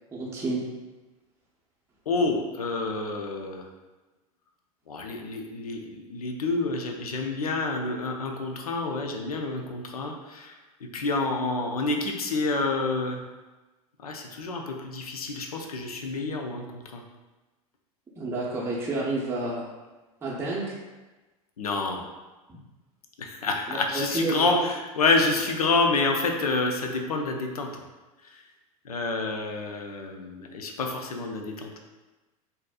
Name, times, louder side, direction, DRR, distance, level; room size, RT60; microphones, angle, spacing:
voice 1, 0.1-0.6 18.2-19.7 20.2-20.7 23.7-24.7, right 2 dB, 15° right, -5 dB, 0.6 m, -29 dB
voice 2, 2.1-3.7 4.9-10.6 10.9-13.2 14.0-17.0 21.6-22.0 23.2-27.7 28.2-28.4 28.8-31.7, left 3 dB, 85° left, 2 dB, 0.5 m, -28 dB
4.0 x 2.6 x 2.3 m, 1.2 s
hypercardioid pair, 90°, 18 cm